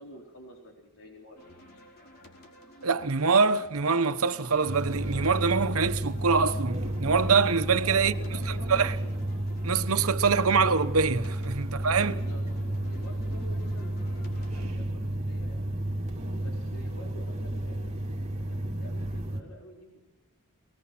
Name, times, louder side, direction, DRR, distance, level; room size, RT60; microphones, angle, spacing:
voice 1, 0.0-1.6 7.8-9.0 12.0-15.7 16.4-20.0, equal, 70° left, 4.3 m, -48 dB
sound 1, 1.4-14.7, left 1 dB, 45° left, 4.3 m, -53 dB
voice 2, 2.8-8.1 8.7-8.9 9.6-12.2, right 5 dB, 75° right, 1.1 m, -24 dB
sound 2, 4.7-19.4, right 1 dB, 30° right, 3.1 m, -32 dB
25.5 x 19.5 x 6.0 m
head